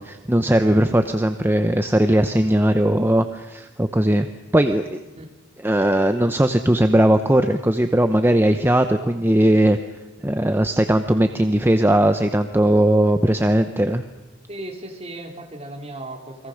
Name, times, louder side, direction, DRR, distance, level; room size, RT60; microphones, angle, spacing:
voice 1, 0.0-4.3 4.5-5.0 5.6-9.8 10.2-14.1, right 1 dB, 10° right, 7 dB, 0.8 m, -18 dB
voice 2, 14.5-16.5, right 1 dB, 30° right, 2 dB, 3.0 m, -36 dB
29.0 x 22.0 x 6.5 m, 1.1 s
head